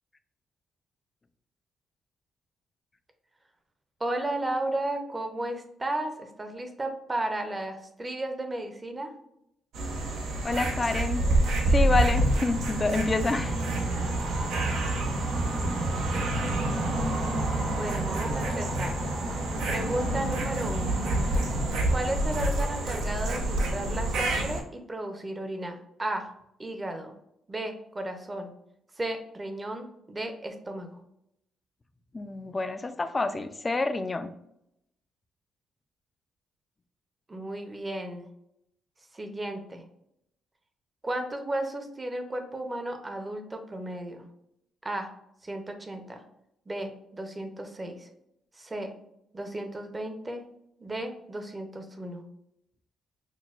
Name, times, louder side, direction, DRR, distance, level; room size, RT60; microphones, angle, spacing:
voice 1, 4.0-9.1 17.7-19.0 19.7-21.0 21.9-26.3 26.6-27.1 27.5-28.5 29.0-30.9 37.3-38.3 39.1-39.8 41.0-44.2 44.8-45.1 45.4-46.2 46.7-48.1 48.6-48.9 49.3-50.4 50.8-52.3, right 1 dB, 25° right, 5 dB, 0.6 m, -34 dB
sound 1, 9.7-24.6, right 1 dB, 85° right, 0.7 m, -27 dB
voice 2, 10.4-11.2 11.7-13.6 32.1-34.3, left 3 dB, 25° left, 10 dB, 0.4 m, -28 dB
6.1 x 2.2 x 2.4 m, 0.79 s
cardioid pair, 90°, 0 cm